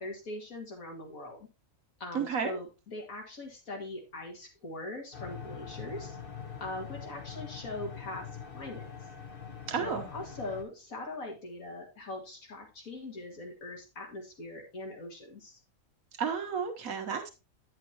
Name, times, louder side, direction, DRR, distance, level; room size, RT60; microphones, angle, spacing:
voice 1, 0.0-1.5 2.0-6.2 6.6-8.3 8.5-8.9 9.8-15.6, left 2 dB, 75° left, 1 dB, 2.6 m, -41 dB
voice 2, 2.1-2.5 9.7-10.1 16.1-17.3, right 6 dB, 80° right, 5 dB, 1.5 m, -32 dB
sound 1, 5.1-10.6, left 7 dB, 45° left, 1.1 m, -43 dB
9.4 x 7.5 x 2.9 m, 0.27 s
omnidirectional pair, 1.5 m